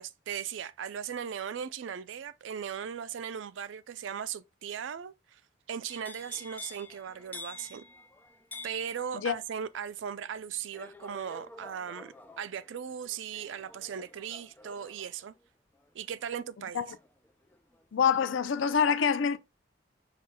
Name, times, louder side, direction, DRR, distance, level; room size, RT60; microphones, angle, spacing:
voice 1, 0.0-5.4 5.7-7.8 8.6-15.3 15.9-16.8, right 8 dB, 80° right, 0.4 m, -38 dB
sound 1, 5.9-17.8 18.2-18.6, left 3 dB, 10° left, 0.4 m, -50 dB
voice 2, 17.9-19.4, left 7 dB, 90° left, 0.5 m, -26 dB
5.0 x 2.2 x 4.1 m
head